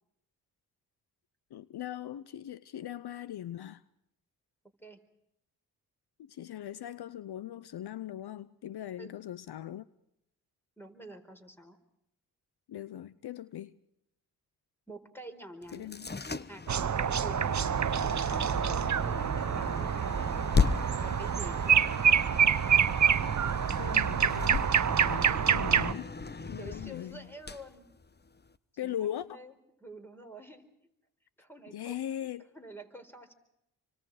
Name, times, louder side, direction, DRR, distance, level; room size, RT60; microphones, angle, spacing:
voice 1, 1.5-3.8 6.2-9.9 12.7-13.7 15.7-16.1 23.2-24.7 25.0-25.3 25.5-26.1 26.5-27.3 28.8-29.4 31.7-32.5, left 11 dB, 65° left, 0.8 m, -40 dB
voice 2, 10.8-11.8 14.9-16.0 16.4-17.6 18.0-20.3 21.0-21.6 26.6-27.8 28.8-29.5 29.8-30.6 31.4-32.0 32.5-33.3, right 1 dB, 5° left, 4.7 m, -48 dB
sound 1, 15.6-28.6, left 4 dB, 25° left, 1.1 m, -36 dB
sound 2, 16.7-25.9, right 8 dB, 45° right, 0.9 m, -27 dB
29.0 x 25.0 x 5.0 m
supercardioid pair, 40°, 41 cm